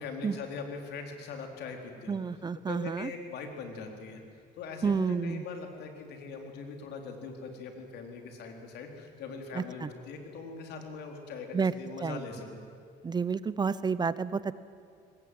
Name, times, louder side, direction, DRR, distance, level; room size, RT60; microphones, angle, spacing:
voice 1, 0.0-2.2 2.7-4.2 4.6-12.6, left 4 dB, 75° left, 4 dB, 3.9 m, -41 dB
voice 2, 2.1-3.1 4.8-5.4 9.5-9.9 11.5-11.7 12.0-12.2 13.0-14.5, right 5 dB, 25° right, 16 dB, 0.7 m, -30 dB
23.0 x 19.5 x 9.5 m, 2.5 s
cardioid pair, 110°, 17 cm